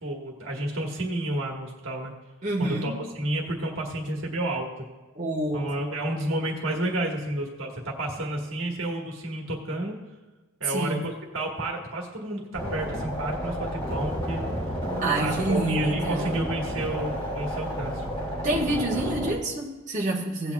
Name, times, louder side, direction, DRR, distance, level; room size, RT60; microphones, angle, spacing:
voice 1, 0.0-2.1 2.6-4.9 5.5-10.0 10.6-14.5 15.2-18.1, right 1 dB, 60° right, -1 dB, 1.7 m, -31 dB
voice 2, 2.4-3.0 5.1-5.7 10.6-11.0 15.0-16.4 18.4-20.5, right 2 dB, 35° right, -5 dB, 1.5 m, -27 dB
sound 1, 12.5-19.3, equal, 20° left, 2.9 m, -31 dB
16.5 x 8.7 x 2.4 m, 1.2 s
head